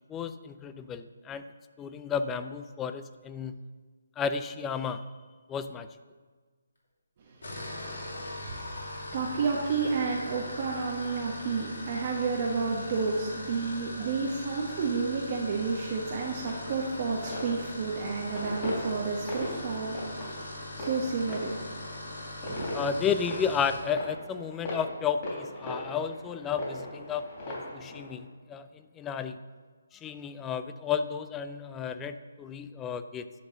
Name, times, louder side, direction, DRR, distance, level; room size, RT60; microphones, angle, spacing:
voice 1, 0.1-1.5 1.8-3.6 4.2-5.0 5.5-5.9 22.7-29.4 29.9-33.3, left 7 dB, 15° left, 11 dB, 0.3 m, -32 dB
sound 1, 7.3-23.9, left 1 dB, 70° left, 2.6 m, -41 dB
voice 2, 7.4-7.9 8.4-8.6 9.1-21.6 22.5-22.7, right 4 dB, 40° right, -2 dB, 1.2 m, -31 dB
sound 2, 16.3-28.1, left 1 dB, 30° left, 3.3 m, -39 dB
10.5 x 4.6 x 6.5 m, 1.4 s
figure-of-eight pair, 155°, 0 cm